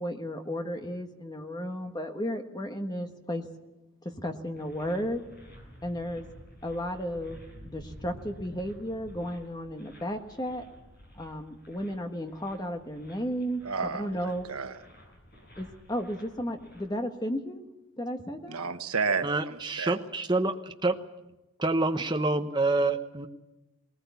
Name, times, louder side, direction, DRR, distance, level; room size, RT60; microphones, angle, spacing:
voice 1, 0.0-3.5 4.0-5.2 5.8-6.3 6.6-10.6 11.1-13.6 14.0-14.5 15.6-17.6 18.0-18.6, equal, 20° left, 5 dB, 1.4 m, -34 dB
sound 1, 4.5-16.8, equal, 45° left, 6.9 m, -51 dB
voice 2, 13.6-14.8 18.5-20.0, right 5 dB, 85° right, 8 dB, 1.2 m, -32 dB
voice 3, 19.2-21.0 21.6-23.3, right 2 dB, 20° right, 5 dB, 1.0 m, -27 dB
19.5 x 19.5 x 8.3 m, 0.99 s
head